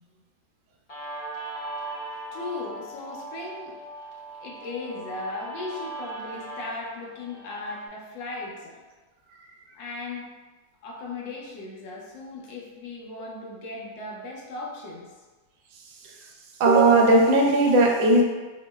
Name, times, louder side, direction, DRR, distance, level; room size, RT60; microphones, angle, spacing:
Guitar, 0.9-7.9, right 2 dB, 45° left, 0.8 m, -39 dB
voice 1, 2.3-3.7 4.4-8.8 9.7-10.3 10.8-15.1, left 3 dB, 85° left, -2 dB, 1.4 m, -37 dB
voice 2, 16.6-18.2, right 2 dB, 85° right, 0 dB, 1.3 m, -17 dB
4.8 x 2.0 x 2.2 m, 1.3 s
omnidirectional pair, 2.0 m